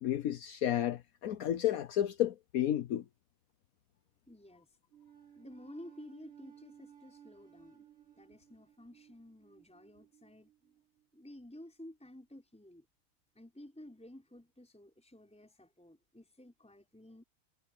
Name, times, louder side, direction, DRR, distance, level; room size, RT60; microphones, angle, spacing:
voice 1, 0.0-3.0, left 11 dB, 60° left, 0.9 m, -32 dB
voice 2, 4.3-4.7 5.3-7.9 8.2-10.7 11.1-12.8 13.3-17.2, left 1 dB, 5° left, 4.9 m, -53 dB
sound 1, 4.9-11.3, right 9 dB, 55° right, 6.0 m, -59 dB
omnidirectional pair, 2.4 m